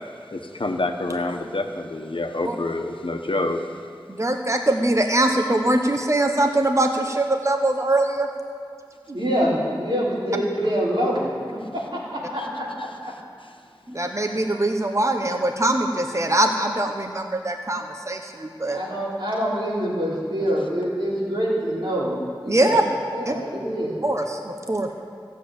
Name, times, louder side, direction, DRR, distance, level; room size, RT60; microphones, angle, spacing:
voice 1, 0.3-3.6 14.3-14.4, left 2 dB, 80° left, 4 dB, 1.0 m, -27 dB
voice 2, 4.2-8.3 13.9-18.8 22.5-22.8 23.3-23.4 24.0-24.9, right 1 dB, 35° right, 4 dB, 1.0 m, -22 dB
voice 3, 9.1-12.7 13.0-13.1 18.7-22.8 23.1-24.0, equal, 90° right, -7 dB, 4.0 m, -25 dB
14.5 x 7.4 x 8.7 m, 2.3 s
wide cardioid pair, 45°, 9 cm